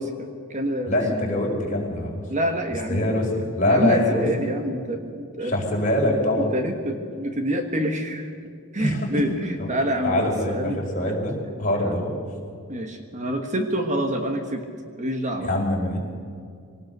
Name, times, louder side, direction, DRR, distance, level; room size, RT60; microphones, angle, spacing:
voice 1, 0.0-1.0 2.3-3.0 3.7-5.5 6.4-8.3 8.7-11.1 11.8-11.9 12.7-14.6 15.0-15.7, equal, 30° right, 5 dB, 1.4 m, -27 dB
voice 2, 0.9-2.2 2.9-4.2 5.4-6.5 8.8-9.0 10.0-12.1 15.5-16.0, left 1 dB, 35° left, -1 dB, 4.6 m, -23 dB
23.5 x 18.5 x 6.7 m, 2.3 s
head